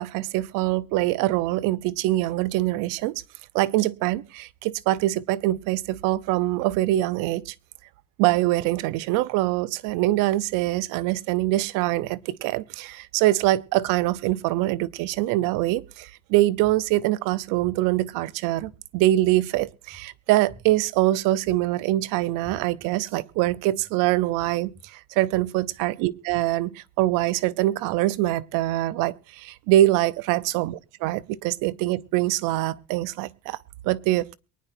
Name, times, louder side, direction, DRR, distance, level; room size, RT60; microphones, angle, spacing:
voice 1, 0.0-3.2 3.5-7.5 8.2-30.7 31.0-33.6 33.8-34.4, right 16 dB, 85° right, 0.8 m, -24 dB
sound 1, 16.6-17.0 17.6-18.0 18.6-19.0 19.5-20.0 20.5-20.9 21.4-21.9 22.4-22.8 23.4-23.8 24.4-24.8 25.3-25.7 26.3-26.4, right 1 dB, 45° right, 3.9 m, -48 dB
23.0 x 10.0 x 2.7 m
supercardioid pair, 90°, 32 cm